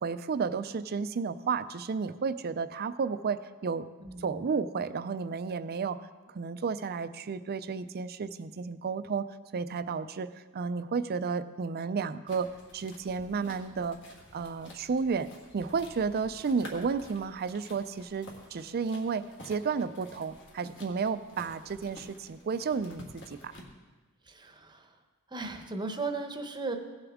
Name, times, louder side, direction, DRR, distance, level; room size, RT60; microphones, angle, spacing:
voice 1, 0.0-3.9 4.2-6.0 6.3-9.3 9.5-12.5 12.7-14.0 14.3-15.3 15.5-23.5, right 5 dB, 45° right, 12 dB, 0.4 m, -32 dB
voice 2, 4.0-4.4 24.3-24.9 25.3-26.8, right 3 dB, 20° right, 5 dB, 0.8 m, -36 dB
sound 1, 12.3-23.6, left 1 dB, 55° left, 1.9 m, -51 dB
17.0 x 6.9 x 3.6 m, 1.3 s
head